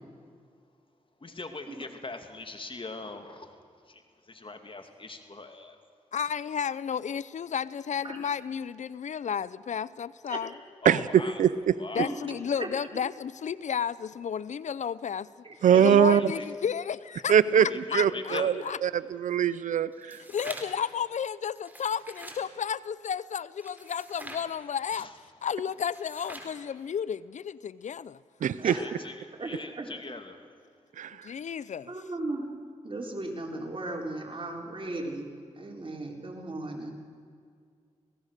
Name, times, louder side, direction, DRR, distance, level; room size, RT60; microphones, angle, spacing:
voice 1, 1.2-5.8 10.8-11.4 11.8-12.1 15.7-16.5 17.5-18.5 24.9-25.1 28.7-29.1 29.4-30.4, left 3 dB, 45° left, 6 dB, 2.5 m, -41 dB
voice 2, 6.1-10.5 12.0-15.3 15.8-17.3 17.6-18.8 20.3-25.1 25.4-28.2 31.2-31.9, left 7 dB, 70° left, 19 dB, 0.5 m, -32 dB
voice 3, 12.0-12.7 15.4-15.8 28.6-28.8 29.4-29.9 31.9-32.5 32.8-35.3 35.6-36.9, right 2 dB, 40° right, 1 dB, 4.2 m, -36 dB
voice 4, 15.6-16.2 17.3-17.7 17.9-18.5 18.8-20.2 28.4-28.7 31.0-31.2, right 9 dB, 90° right, 16 dB, 0.5 m, -22 dB
sound 1, 19.9-20.9 21.6-22.4 23.6-24.5 25.7-26.6, right 1 dB, 15° right, 4.3 m, -44 dB
26.5 x 18.0 x 6.6 m, 2.2 s
cardioid pair, 50°, 13 cm